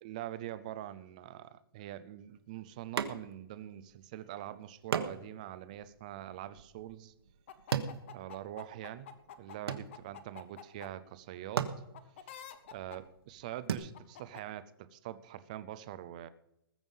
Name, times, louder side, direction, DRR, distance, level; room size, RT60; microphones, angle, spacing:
voice 1, 0.0-7.1 8.1-9.1 9.4-11.7 12.2-12.4 12.7-16.3, right 12 dB, 20° right, 13 dB, 0.4 m, -44 dB
sound 1, 3.0-3.6 3.9-4.0 4.9-8.8 9.2-10.4 11.1-11.2 11.5-13.7, right 7 dB, 80° right, 1.4 m, -38 dB
sound 2, 7.5-10.9 11.9-13.0 13.9-14.4, left 8 dB, 30° left, 0.9 m, -48 dB
20.0 x 7.2 x 5.5 m, 0.81 s
hypercardioid pair, 175°, 13 cm